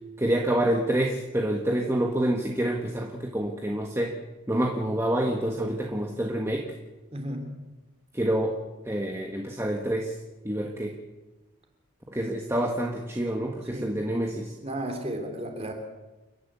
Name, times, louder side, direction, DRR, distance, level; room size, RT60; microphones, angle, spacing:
voice 1, 0.2-4.1 4.5-6.7 8.1-8.5 8.8-10.2 10.4-11.0 12.1-14.5, right 1 dB, 10° right, 1 dB, 1.5 m, -27 dB
voice 2, 7.1-7.6 13.7-14.0 14.6-15.7, right 1 dB, 30° right, 4 dB, 3.5 m, -34 dB
29.5 x 11.5 x 8.3 m, 1.1 s
head